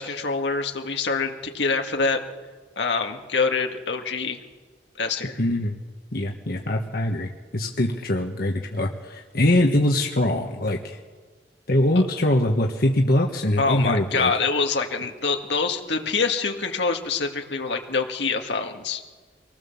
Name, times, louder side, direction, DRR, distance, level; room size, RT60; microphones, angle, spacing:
voice 1, 0.0-2.2 2.8-4.4 5.0-5.4 13.6-19.0, left 4 dB, 75° left, 4 dB, 2.0 m, -25 dB
voice 2, 5.4-5.8 6.1-11.0 11.7-14.3, left 1 dB, 60° left, 1 dB, 1.4 m, -23 dB
25.0 x 18.5 x 7.2 m, 1.4 s
head